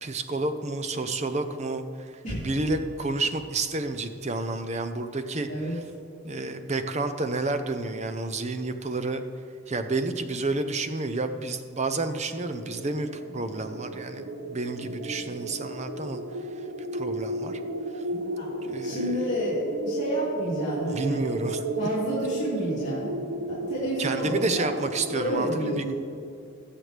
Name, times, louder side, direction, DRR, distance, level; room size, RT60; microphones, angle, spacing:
voice 1, 0.0-2.1 2.4-5.5 6.2-9.2 9.7-16.2 16.6-16.7 16.9-17.6 17.9-18.0 18.6-19.2 20.9-21.7 24.0-25.9, right 2 dB, 35° right, 8 dB, 0.7 m, -30 dB
sound 1, 12.6-25.3, right 1 dB, 85° right, 0.8 m, -34 dB
voice 2, 18.1-18.6 18.8-21.3 21.8-23.2 23.4-24.8 25.1-25.9, equal, 35° left, -9 dB, 3.1 m, -30 dB
20.5 x 7.6 x 3.4 m, 2.6 s
head